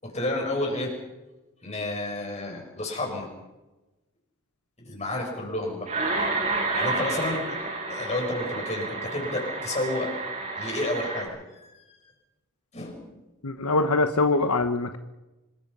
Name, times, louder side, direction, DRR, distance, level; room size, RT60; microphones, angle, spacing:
voice 1, 0.0-0.9 1.6-3.3 4.8-5.9 6.7-7.4 7.9-10.1 10.6-12.1 12.7-13.2, left 1 dB, 30° left, 1 dB, 6.9 m, -31 dB
sound 1, 5.9-11.2, right 3 dB, 35° right, 7.9 m, -30 dB
voice 2, 13.4-15.0, left 3 dB, 80° left, 8 dB, 1.1 m, -23 dB
26.5 x 22.0 x 5.6 m, 1.1 s
head